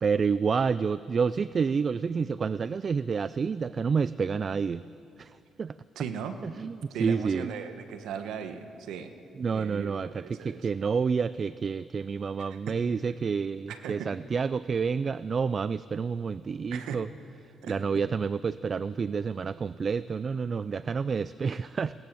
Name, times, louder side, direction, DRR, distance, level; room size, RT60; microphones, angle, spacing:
voice 1, 0.0-4.8 5.2-5.8 6.4-7.5 9.4-17.1 17.7-21.9, right 5 dB, 40° right, 17 dB, 0.4 m, -29 dB
voice 2, 5.9-6.4 6.9-9.1 9.5-10.6 12.4-12.8 13.7-14.1 16.7-17.0 17.6-17.7, right 7 dB, 85° right, 8 dB, 1.4 m, -38 dB
20.0 x 18.5 x 7.8 m, 2.7 s
cardioid pair, 90°, 0 cm